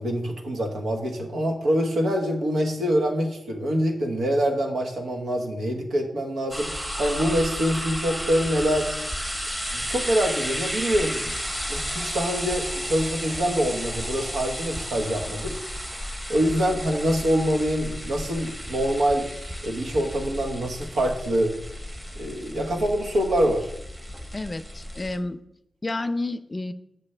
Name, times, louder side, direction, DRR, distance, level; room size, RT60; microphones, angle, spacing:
voice 1, 0.0-8.9 9.7-11.4 11.7-15.5 15.9-16.0 16.3-19.3 19.6-21.5 22.1-23.7, equal, 85° right, 2 dB, 1.2 m, -25 dB
sound 1, 6.5-25.2, equal, 15° right, 1.2 m, -33 dB
voice 2, 24.3-25.4 25.8-26.7, left 2 dB, 30° left, 11 dB, 0.5 m, -30 dB
7.2 x 6.9 x 3.3 m, 0.79 s
cardioid pair, 60°, 0 cm